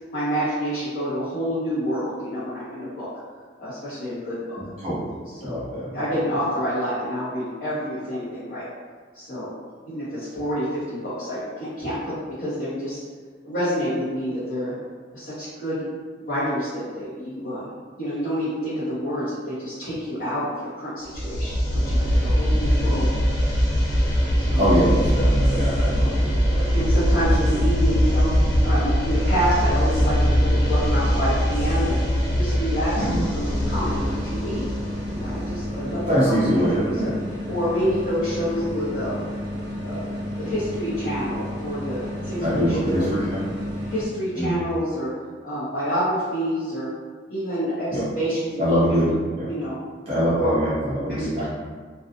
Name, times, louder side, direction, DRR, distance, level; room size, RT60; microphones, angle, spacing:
voice 1, 0.1-3.1 3.6-4.6 5.3-5.6 5.9-8.6 9.1-9.5 9.9-13.0 13.4-14.7 15.1-15.8 16.2-23.1 24.3-24.7 26.7-32.0 32.3-34.6 35.1-37.1 37.5-39.3 39.8-40.1 40.4-43.1 43.8-45.1 45.4-46.9 47.3-48.8 49.5-49.8 50.3-50.5 51.2-51.5, equal, 55° left, -13 dB, 0.9 m, -28 dB
voice 2, 4.6-5.1 5.4-5.9 22.8-22.9 24.6-26.7 32.9-33.3 36.0-37.1 42.4-43.4 44.3-44.6 47.9-48.0 48.6-49.5 50.1-51.5, equal, 35° right, -10 dB, 0.6 m, -23 dB
sound 1, 21.1-35.9, equal, 85° left, 1.1 m, -22 dB
sound 2, 33.4-44.1, equal, 70° right, 0.9 m, -32 dB
2.5 x 2.3 x 2.5 m, 1.5 s
head